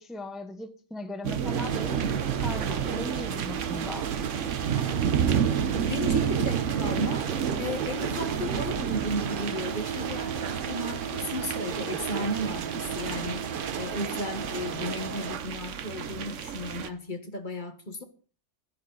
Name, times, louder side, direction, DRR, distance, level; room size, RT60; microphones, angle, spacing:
voice 1, 0.0-4.1, left 2 dB, ahead, 1.0 m, -39 dB
sound 1, 1.2-16.9, right 8 dB, 85° right, 1.3 m, -31 dB
sound 2, 1.4-15.4, right 8 dB, 50° right, 0.8 m, -35 dB
voice 2, 5.7-18.0, left 1 dB, 40° left, 1.6 m, -35 dB
15.0 x 12.0 x 4.1 m
omnidirectional pair, 1.2 m